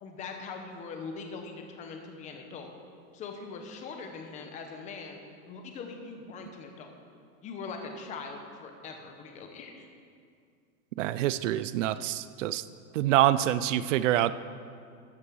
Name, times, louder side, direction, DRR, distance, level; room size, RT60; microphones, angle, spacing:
voice 1, 0.0-2.7 3.1-5.2 5.4-6.9 7.4-9.9, left 4 dB, 15° left, 4 dB, 0.8 m, -41 dB
voice 2, 11.0-12.6 12.9-14.3, right 13 dB, 55° right, 15 dB, 0.5 m, -26 dB
13.0 x 6.9 x 6.2 m, 2.3 s
supercardioid pair, 160°, 44 cm